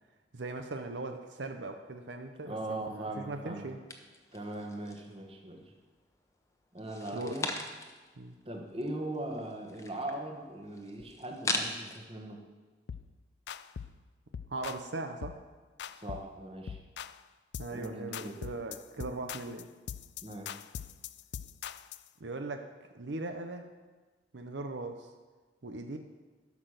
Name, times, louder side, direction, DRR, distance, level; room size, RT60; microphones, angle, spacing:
voice 1, 0.3-3.8 7.1-7.3 8.2-8.4 14.5-15.4 17.6-19.7 22.2-22.7 22.9-23.7 24.3-25.1 25.6-26.0, right 2 dB, 85° right, 6 dB, 0.8 m, -39 dB
voice 2, 2.4-3.7 4.3-5.6 6.7-7.5 8.4-12.4 15.9-16.8 17.7-18.4 20.2-20.6, right 1 dB, 30° right, 2 dB, 1.5 m, -40 dB
sound 1, 3.9-5.2 5.6-6.3 6.8-8.1 8.4-8.5 8.7-12.0, left 2 dB, 15° left, 0.9 m, -39 dB
sound 2, 12.9-13.1 13.5-14.0 14.3-14.9 15.2-15.5 15.8-16.3 16.7-17.2 17.5-17.9 18.1-22.1, left 8 dB, 70° left, 0.4 m, -42 dB
12.0 x 6.1 x 6.6 m, 1.3 s
head